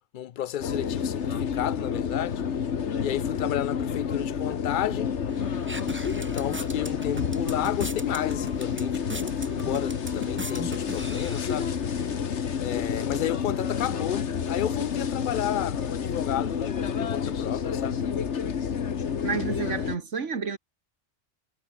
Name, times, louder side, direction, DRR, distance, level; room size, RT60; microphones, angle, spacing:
voice 1, 0.1-2.4 3.0-5.2 6.1-11.7 12.6-18.0, left 11 dB, 55° left, 0.6 m, -32 dB
sound 1, 0.6-20.0, left 7 dB, 75° left, 1.5 m, -29 dB
sound 2, 5.3-12.2, right 1 dB, 10° right, 1.1 m, -40 dB
voice 2, 19.2-20.6, right 5 dB, 80° right, 2.1 m, -30 dB
omnidirectional pair, 1.2 m